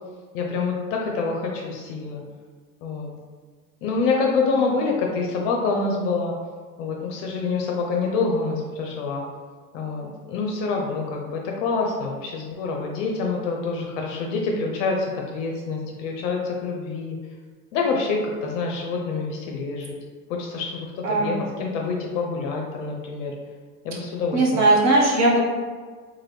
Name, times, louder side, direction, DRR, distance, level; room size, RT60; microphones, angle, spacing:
voice 1, 0.3-2.2 2.8-3.2 3.8-6.3 6.8-9.2 9.7-17.2 17.7-19.9 20.3-23.3 23.8-24.6, left 4 dB, 55° left, 0 dB, 0.6 m, -26 dB
voice 2, 21.0-21.4 24.3-25.4, right 2 dB, 35° right, -3 dB, 0.8 m, -18 dB
2.9 x 2.2 x 3.3 m, 1.5 s
hypercardioid pair, 100°, 46 cm